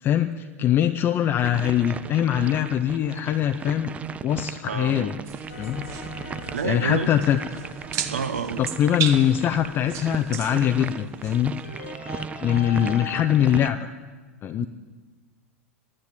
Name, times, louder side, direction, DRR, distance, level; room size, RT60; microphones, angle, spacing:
voice 1, 0.0-3.9 4.2-5.2 5.6-5.8 6.6-7.4 8.6-11.5 12.4-13.9 14.4-14.7, left 10 dB, 30° left, 7 dB, 0.5 m, -22 dB
sound 1, 1.4-13.7, right 6 dB, 15° right, 0.4 m, -36 dB
voice 2, 4.6-5.2 6.5-7.1 8.1-8.6 14.6-14.7, right 6 dB, 70° right, 10 dB, 1.0 m, -29 dB
sound 2, 5.2-11.9, right 8 dB, 40° right, 1.2 m, -36 dB
sound 3, 5.5-9.6 11.6-13.2, left 6 dB, 75° left, 1.6 m, -41 dB
12.0 x 9.8 x 9.8 m, 1.4 s
figure-of-eight pair, 90°, 8 cm